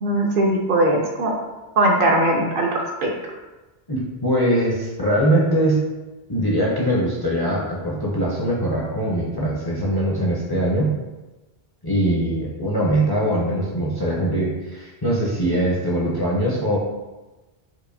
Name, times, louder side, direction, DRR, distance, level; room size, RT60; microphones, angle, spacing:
voice 1, 0.0-1.3 1.8-3.1, right 1 dB, 65° right, 0 dB, 0.7 m, -20 dB
voice 2, 3.9-5.9 6.3-10.9 11.8-16.8, right 1 dB, 30° left, -5 dB, 0.5 m, -22 dB
4.6 x 2.5 x 2.6 m, 1.1 s
omnidirectional pair, 1.0 m